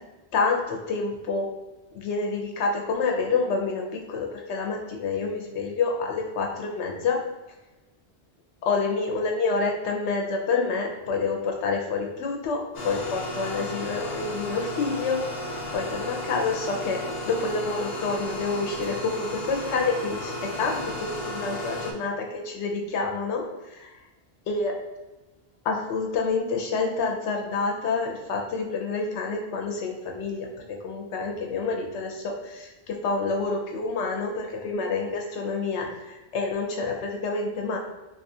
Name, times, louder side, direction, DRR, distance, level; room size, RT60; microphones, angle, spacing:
voice 1, 0.3-1.5 1.9-7.2 8.6-23.4 23.7-23.9 24.5-24.7 25.6-37.8, left 4 dB, 85° left, 1 dB, 0.9 m, -28 dB
sound 1, 12.7-21.9, left 1 dB, 55° left, 0.5 m, -34 dB
3.7 x 2.4 x 2.6 m, 1.1 s
omnidirectional pair, 1.1 m